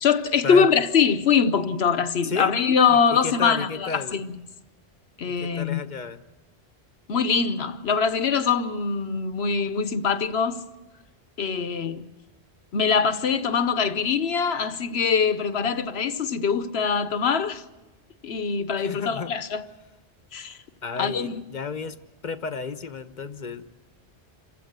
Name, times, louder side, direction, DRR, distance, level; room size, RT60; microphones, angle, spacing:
voice 1, 0.0-4.3 5.2-5.8 7.1-10.6 11.4-12.0 12.7-17.6 18.2-19.6 20.3-20.6 21.0-21.4, left 6 dB, 70° left, 1.1 m, -23 dB
voice 2, 2.2-2.5 2.9-4.2 5.3-6.2 18.7-19.3 20.8-22.0 22.2-23.7, left 5 dB, 45° left, 1.1 m, -32 dB
27.0 x 16.0 x 8.0 m
omnidirectional pair, 1.1 m